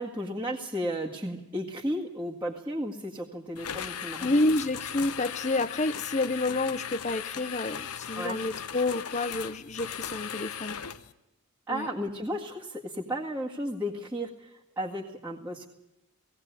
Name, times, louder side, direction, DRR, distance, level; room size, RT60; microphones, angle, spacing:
voice 1, 0.0-4.4 8.2-8.4 11.7-15.7, equal, 10° right, -7 dB, 1.9 m, -34 dB
sound 1, 3.6-11.1, left 8 dB, 90° left, 1.0 m, -38 dB
voice 2, 4.2-10.8 11.7-11.9, left 2 dB, 30° left, 14 dB, 0.7 m, -29 dB
18.0 x 17.5 x 8.2 m, 0.92 s
head